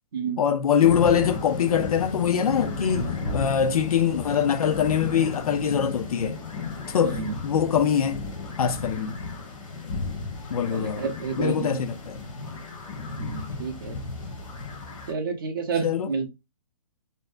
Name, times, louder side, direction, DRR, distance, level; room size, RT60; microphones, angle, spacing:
voice 1, 0.4-6.4 6.9-8.3 8.6-9.2 10.5-11.1 11.4-12.2 15.8-16.1, left 8 dB, 85° left, 0.5 m, -23 dB
sound 1, 0.8-15.1, left 3 dB, 60° left, 0.9 m, -34 dB
voice 2, 7.0-7.4 10.7-11.8 13.2-14.0 15.1-16.3, right 5 dB, 35° right, 0.5 m, -30 dB
2.5 x 2.1 x 2.3 m
hypercardioid pair, 170°, 18 cm